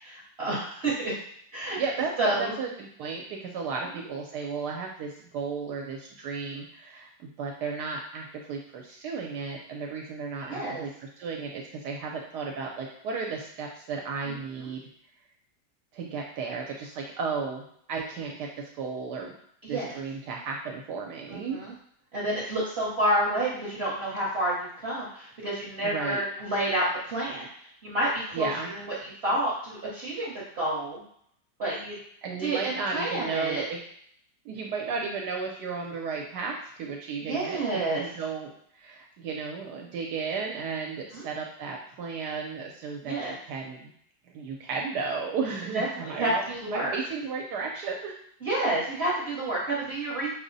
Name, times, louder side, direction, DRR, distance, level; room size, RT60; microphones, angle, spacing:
voice 1, 0.0-1.1 1.5-1.8 2.2-2.5 10.5-10.8 14.3-14.4 19.6-19.9 21.3-21.7 22.1-27.5 27.8-31.0 31.6-32.0 32.4-33.6 37.2-38.0 41.1-41.2 43.0-43.3 45.7-47.0 48.4-50.3, right 1 dB, 45° right, -7 dB, 1.0 m, -29 dB
voice 2, 1.7-14.8 15.9-18.5 18.8-19.3 19.7-21.6 25.8-26.2 28.3-28.7 32.2-33.8 34.4-43.9 44.3-48.1, right 5 dB, 75° right, 0 dB, 1.1 m, -34 dB
5.0 x 2.1 x 3.9 m, 0.68 s
omnidirectional pair, 1.9 m